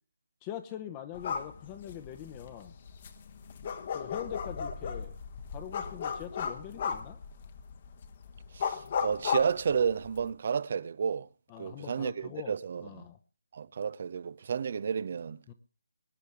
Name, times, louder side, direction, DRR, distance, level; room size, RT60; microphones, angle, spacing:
voice 1, 0.4-2.8 3.9-5.1 5.5-7.2 11.5-12.6 12.8-13.2 15.5-15.6, left 11 dB, 20° left, 1.0 m, -43 dB
sound 1, 1.1-10.3, left 6 dB, 35° left, 1.3 m, -36 dB
voice 2, 8.5-11.3 11.6-13.1 13.5-15.4, right 6 dB, 40° right, 0.6 m, -31 dB
23.0 x 9.7 x 3.6 m
figure-of-eight pair, 150°, 0 cm